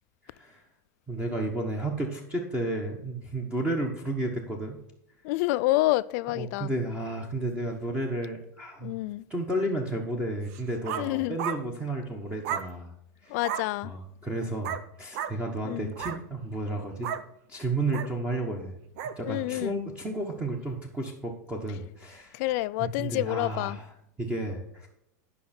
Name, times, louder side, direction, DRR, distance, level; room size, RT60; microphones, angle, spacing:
voice 1, 0.2-0.6 1.1-4.8 6.3-9.0 9.3-12.9 13.2-13.4 13.8-17.1 17.5-18.8 19.2-22.4 22.8-23.8 24.2-24.9, right 1 dB, 10° right, 1.2 m, -32 dB
voice 2, 5.2-6.7 8.8-9.3 10.9-11.4 13.3-13.9 15.6-15.9 19.2-19.8 22.3-23.8, left 18 dB, 55° left, 0.4 m, -28 dB
sound 1, 10.5-11.1 11.4-11.6 12.4-12.7 13.4-13.7 14.6-14.9 15.1-15.4 15.9-16.2 17.0-17.3 17.9-18.1 19.0-19.2, right 9 dB, 60° right, 0.7 m, -33 dB
11.5 x 5.6 x 4.3 m
supercardioid pair, 135°, 10 cm